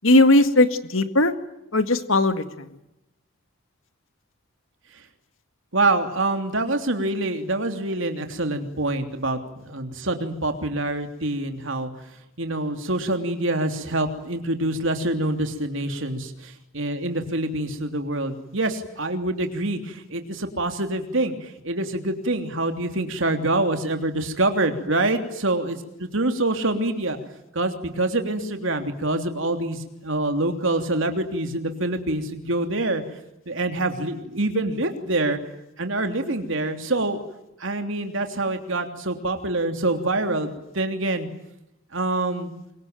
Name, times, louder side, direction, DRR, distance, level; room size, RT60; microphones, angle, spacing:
voice 1, 0.0-1.3 1.7-2.8, left 2 dB, 70° left, 10 dB, 2.0 m, -18 dB
voice 2, 5.7-11.9 12.4-27.2 27.5-33.0 33.5-35.4 35.8-37.2 37.6-41.3 41.9-42.5, right 2 dB, 65° right, 6 dB, 3.2 m, -26 dB
25.0 x 23.0 x 9.2 m, 0.89 s
head